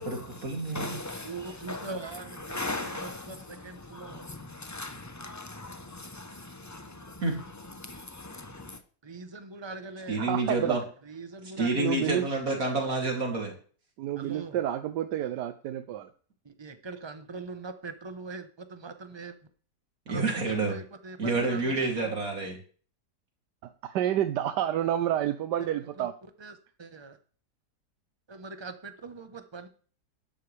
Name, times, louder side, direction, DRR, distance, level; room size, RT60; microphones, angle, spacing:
voice 1, 0.0-1.0 7.2-7.4 10.1-10.8 11.6-13.5 20.1-20.8 21.2-22.6, right 2 dB, 55° right, 3.4 m, -28 dB
voice 2, 0.7-1.9 2.4-7.2 7.8-8.8, left 2 dB, 20° left, 0.4 m, -39 dB
voice 3, 1.2-4.3 9.0-10.2 11.0-12.0 14.2-14.6 16.4-19.4 20.1-20.2 20.5-21.7 26.0-26.1 26.4-26.5 26.8-27.2 28.3-29.7, right 4 dB, 20° right, 0.9 m, -42 dB
voice 4, 10.2-10.8 11.7-12.2 14.0-16.1 23.8-26.1, right 11 dB, 90° right, 1.3 m, -29 dB
12.0 x 11.5 x 3.4 m
omnidirectional pair, 1.8 m